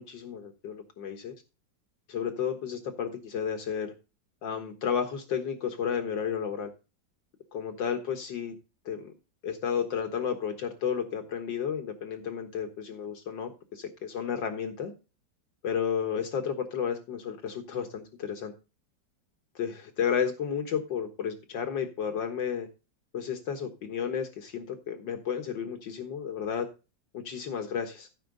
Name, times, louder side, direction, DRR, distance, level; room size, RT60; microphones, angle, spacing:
voice 1, 0.0-1.3 2.1-3.9 4.4-6.7 7.5-8.5 8.9-9.1 9.4-14.9 15.6-18.5 19.6-22.7 23.1-26.7 27.1-28.1, left 7 dB, 75° left, 5 dB, 2.1 m, -32 dB
14.5 x 6.2 x 3.9 m, 0.31 s
omnidirectional pair, 2.0 m